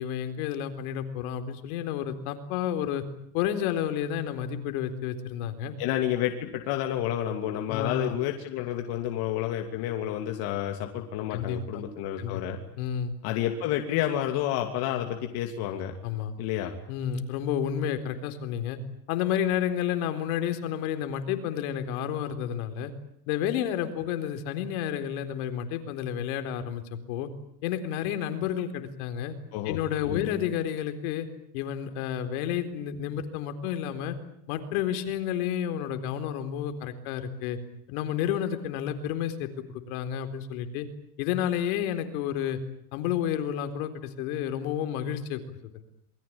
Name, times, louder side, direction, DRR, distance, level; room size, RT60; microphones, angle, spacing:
voice 1, 0.0-3.0 3.3-5.8 7.7-8.2 11.3-11.8 12.2-12.4 12.8-13.1 16.0-16.3 16.9-18.8 19.1-22.9 23.3-27.3 27.6-29.3 29.7-31.3 31.5-34.2 34.5-37.6 37.9-40.9 41.2-42.6 42.9-45.4, left 9 dB, 70° left, 8 dB, 4.1 m, -30 dB
voice 2, 5.8-12.6 13.2-15.9 16.4-16.7 29.5-29.8 30.1-30.3, left 11 dB, 55° left, 3 dB, 3.0 m, -30 dB
27.5 x 22.0 x 8.9 m, 0.70 s
supercardioid pair, 145°, 45 cm